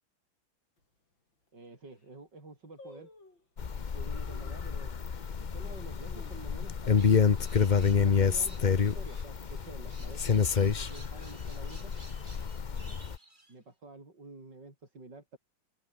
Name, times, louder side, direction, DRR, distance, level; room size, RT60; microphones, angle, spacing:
sound 1, 0.8-0.9 1.5-1.6 1.8-2.2 2.8-3.5 4.3-4.7 5.2-5.3 5.8-7.0 7.3-7.4 7.7-8.1 8.5-8.8 9.5-10.2 10.5-10.6, left 2 dB, 70° left, 7.7 m, -55 dB
voice 1, 1.5-3.1 3.9-5.0 5.4-7.4 7.8-11.9 12.7-13.0 13.5-15.4, right 3 dB, 60° right, 6.4 m, -49 dB
sound 2, 3.6-13.2, left 6 dB, 45° left, 0.6 m, -28 dB
sound 3, 7.0-13.5, right 1 dB, 25° right, 5.0 m, -56 dB
open air
omnidirectional pair, 2.1 m